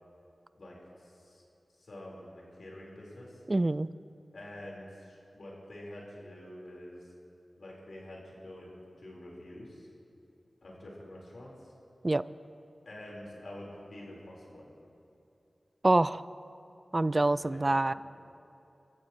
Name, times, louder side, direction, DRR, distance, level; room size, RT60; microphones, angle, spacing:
voice 1, 0.5-1.4 1.8-3.4 4.3-7.1 7.6-9.9 10.6-11.7 12.8-14.7 17.2-17.6 17.9-18.0, left 1 dB, 75° left, -4 dB, 4.4 m, -47 dB
voice 2, 3.5-3.9 12.0-12.2 15.8-16.2 16.9-17.9, right 2 dB, 40° right, 16 dB, 0.3 m, -25 dB
24.5 x 14.5 x 3.2 m, 2.7 s
cardioid pair, 40°, 0 cm